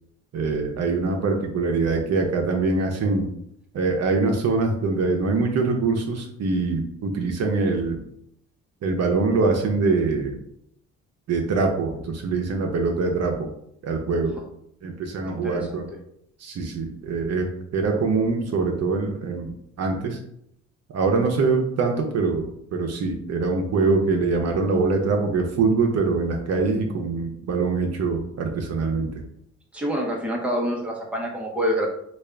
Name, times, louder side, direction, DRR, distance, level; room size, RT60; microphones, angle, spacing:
voice 1, 0.3-3.3 3.7-8.0 8.8-10.4 11.3-13.5 13.8-14.4 14.8-15.9 16.4-20.2 20.9-29.1, right 4 dB, 60° right, 2 dB, 0.7 m, -23 dB
voice 2, 15.3-15.8 29.7-31.9, equal, 5° right, -1 dB, 0.9 m, -26 dB
3.4 x 2.4 x 3.3 m, 0.72 s
cardioid pair, 90°, 30 cm